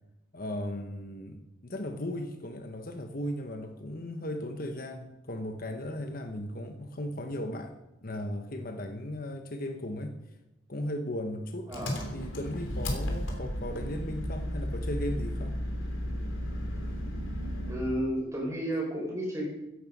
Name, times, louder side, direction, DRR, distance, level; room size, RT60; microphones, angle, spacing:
voice 1, 0.3-7.7 8.0-10.2 10.7-11.7 12.1-15.6, left 1 dB, 45° left, 6 dB, 1.2 m, -36 dB
Engine, 11.7-18.0, equal, 80° left, 3.2 m, -34 dB
voice 2, 17.7-19.5, equal, 15° right, -2 dB, 5.5 m, -32 dB
15.5 x 11.0 x 5.4 m, 0.92 s
head